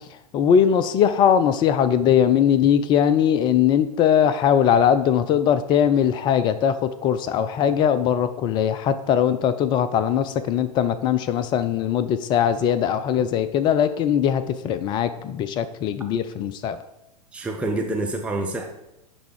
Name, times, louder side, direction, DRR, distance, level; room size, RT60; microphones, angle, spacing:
voice 1, 0.3-16.8, left 8 dB, 20° left, 13 dB, 0.4 m, -20 dB
voice 2, 17.3-18.7, right 2 dB, 5° right, 1 dB, 0.7 m, -27 dB
10.0 x 3.5 x 6.4 m, 0.89 s
figure-of-eight pair, 100°, 21 cm